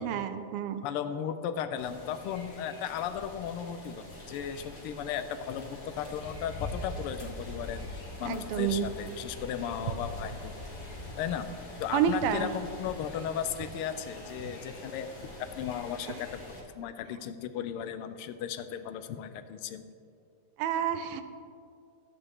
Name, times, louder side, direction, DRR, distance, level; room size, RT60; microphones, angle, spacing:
voice 1, 0.0-0.8 8.2-8.9 11.9-12.5 16.1-16.2 20.6-21.2, right 9 dB, 85° right, 10 dB, 1.5 m, -29 dB
voice 2, 0.8-10.5 11.2-11.5 11.8-15.1 15.6-19.8, left 9 dB, 85° left, 10 dB, 1.5 m, -36 dB
sound 1, 1.8-16.6, left 2 dB, 40° left, 1.8 m, -43 dB
12.0 x 8.2 x 3.6 m, 2.4 s
omnidirectional pair, 2.4 m